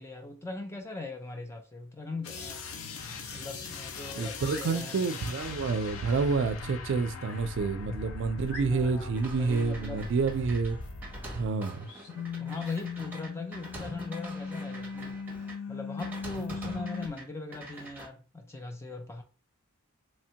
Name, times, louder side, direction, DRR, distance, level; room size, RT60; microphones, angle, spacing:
voice 1, 0.0-2.7 3.3-5.0 8.7-9.1 9.4-10.0 12.4-15.2 15.7-19.2, left 3 dB, 15° left, 0.4 m, -40 dB
sound 1, 2.2-11.8 12.1-17.1, left 4 dB, 80° left, 0.5 m, -39 dB
voice 2, 4.2-10.8 11.3-11.9, right 4 dB, 60° right, 0.4 m, -29 dB
sound 2, 4.3-4.7 7.2-7.4 8.0-8.1 8.5-9.1 11.8-12.1 12.5-12.8, left 1 dB, 55° left, 1.2 m, -47 dB
sound 3, 9.1-15.5 16.0-17.2 17.5-18.1, right 2 dB, 10° right, 0.8 m, -45 dB
3.1 x 2.2 x 2.7 m
head